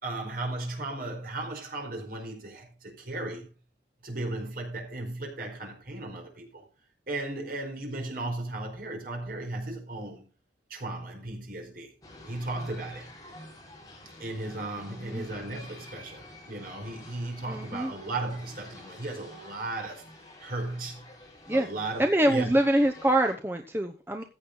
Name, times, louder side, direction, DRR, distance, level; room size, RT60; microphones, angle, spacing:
voice 1, 0.0-3.5 4.0-6.6 7.1-10.2 10.7-11.9 12.2-13.1 14.2-20.0 20.4-21.1 21.5-22.5, right 2 dB, 50° right, 4.7 m, -36 dB
sound 1, 12.0-23.3, left 1 dB, 20° left, 5.3 m, -49 dB
voice 2, 14.8-15.3 17.5-17.9 21.5-21.7 22.0-24.2, right 1 dB, 10° right, 0.9 m, -25 dB
15.0 x 8.9 x 3.9 m
head